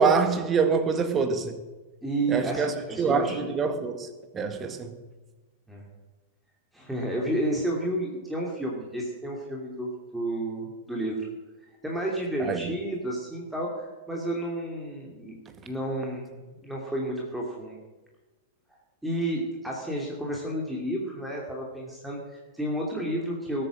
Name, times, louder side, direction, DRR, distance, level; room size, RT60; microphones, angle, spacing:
voice 1, 0.0-1.6 2.3-4.1 4.3-5.0 12.4-12.6, right 5 dB, 20° right, 1.8 m, -25 dB
voice 2, 2.0-3.5 5.7-5.9 6.7-11.3 11.8-15.4 15.6-17.8 19.0-23.6, right 1 dB, 5° right, 2.7 m, -31 dB
19.0 x 9.0 x 6.3 m
figure-of-eight pair, 100°, 0 cm